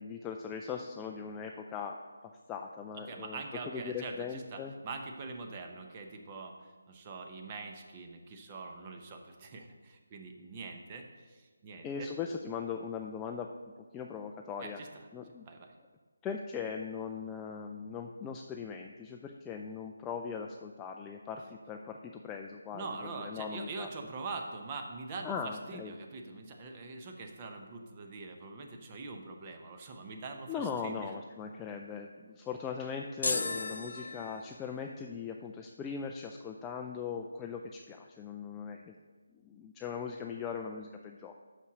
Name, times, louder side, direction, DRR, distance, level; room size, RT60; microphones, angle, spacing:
voice 1, 0.0-2.0 2.2-3.4 3.7-4.7 11.8-13.5 13.9-14.8 15.1-15.5 16.2-23.9 25.2-25.9 30.5-38.9 39.4-41.3, left 6 dB, 10° left, 2 dB, 0.3 m, -39 dB
voice 2, 3.1-12.1 14.6-14.9 15.4-15.7 22.7-31.1, right 3 dB, 25° right, 3 dB, 0.8 m, -43 dB
sound 1, 33.2-34.8, left 3 dB, 60° left, 0.8 m, -35 dB
6.0 x 5.4 x 6.5 m, 1.4 s
figure-of-eight pair, 155°, 0 cm